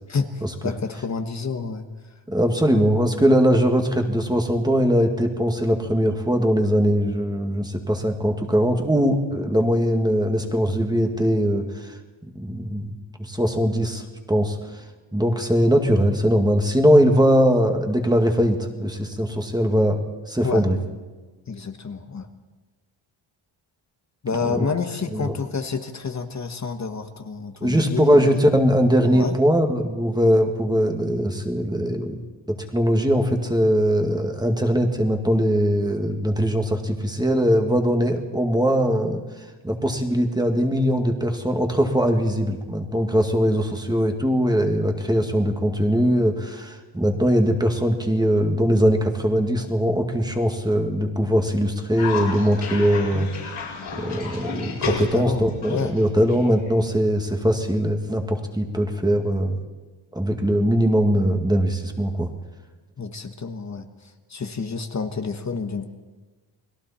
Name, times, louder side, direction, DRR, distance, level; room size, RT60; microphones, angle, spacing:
voice 1, 0.1-1.9 20.4-20.6 21.5-22.3 24.2-28.4 29.1-29.3 54.8-55.9 63.0-63.9 64.3-65.9, left 5 dB, 35° left, 7 dB, 1.3 m, -29 dB
voice 2, 2.3-12.0 12.4-14.8 15.1-20.8 24.5-24.7 25.1-25.4 27.6-32.2 32.5-53.6 53.9-59.6 60.1-62.3, equal, 10° right, 4 dB, 2.1 m, -21 dB
Cough, 52.0-57.0, left 4 dB, 80° left, 6.7 m, -32 dB
30.0 x 21.5 x 4.3 m, 1.3 s
wide cardioid pair, 160°, 49 cm